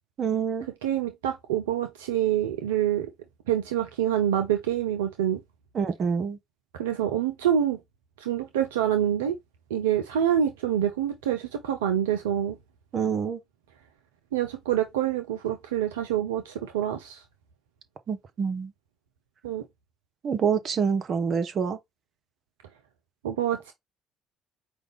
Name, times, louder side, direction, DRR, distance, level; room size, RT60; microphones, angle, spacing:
voice 1, 0.2-0.7 5.7-6.4 12.9-13.4 18.1-18.7 20.2-21.8, right 6 dB, 50° right, 1.0 m, -26 dB
voice 2, 0.8-3.1 3.5-5.4 6.7-7.8 8.2-9.4 9.7-12.6 14.3-17.2 19.4-19.6 23.2-23.7, right 10 dB, 80° right, 0.5 m, -26 dB
5.0 x 2.3 x 3.4 m
hypercardioid pair, 55°, 0 cm